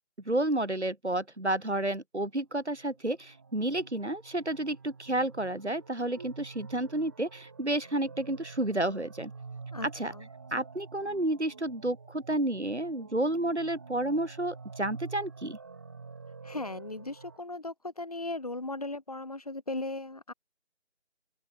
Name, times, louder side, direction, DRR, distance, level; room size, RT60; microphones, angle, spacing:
voice 1, 0.3-9.3 9.8-10.1 10.5-15.6, right 1 dB, 85° right, 3.7 m, -31 dB
sound 1, 2.7-17.4, right 4 dB, 20° right, 6.9 m, -48 dB
voice 2, 9.7-10.3 16.4-20.3, left 2 dB, 35° left, 3.2 m, -37 dB
open air
figure-of-eight pair, 170°, 34 cm